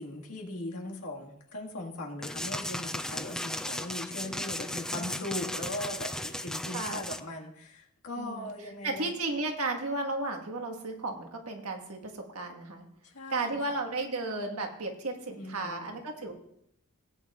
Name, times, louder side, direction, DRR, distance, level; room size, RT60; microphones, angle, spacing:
voice 1, 0.0-9.1 13.0-13.6 15.3-16.0, left 1 dB, 90° left, -1 dB, 1.8 m, -39 dB
sound 1, 2.2-7.2, left 1 dB, 5° left, 0.4 m, -36 dB
voice 2, 6.7-7.1 8.2-8.5 8.8-12.9 13.3-16.3, right 2 dB, 90° right, 4 dB, 1.5 m, -34 dB
17.0 x 8.9 x 2.4 m, 0.76 s
head